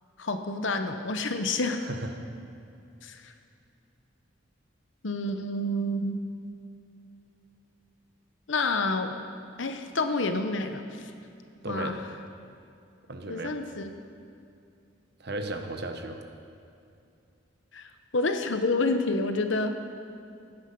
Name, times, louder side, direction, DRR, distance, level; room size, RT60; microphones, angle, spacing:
voice 1, 0.2-1.8 3.0-3.3 5.0-6.2 8.5-9.2 9.6-11.1 11.7-11.9 13.3-13.9 17.7-19.8, left 2 dB, 75° left, 7 dB, 1.0 m, -28 dB
voice 2, 1.8-2.1 11.6-12.0 13.1-13.5 15.2-16.2, right 2 dB, 55° right, 6 dB, 1.1 m, -35 dB
16.5 x 10.0 x 5.4 m, 2.6 s
head